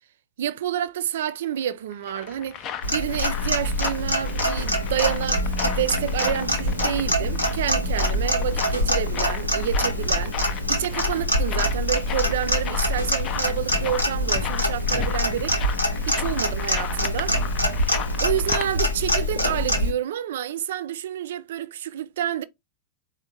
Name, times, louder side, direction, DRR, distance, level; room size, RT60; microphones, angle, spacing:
voice 1, 0.4-2.6 2.9-10.4 10.7-15.6 16.1-17.4 18.2-22.4, right 10 dB, 60° right, 0.3 m, -29 dB
sound 1, 1.7-18.7, left 9 dB, 35° left, 0.4 m, -36 dB
Clock, 2.8-19.9, left 1 dB, 85° left, 0.8 m, -25 dB
4.4 x 2.1 x 3.7 m
figure-of-eight pair, 90°, 0 cm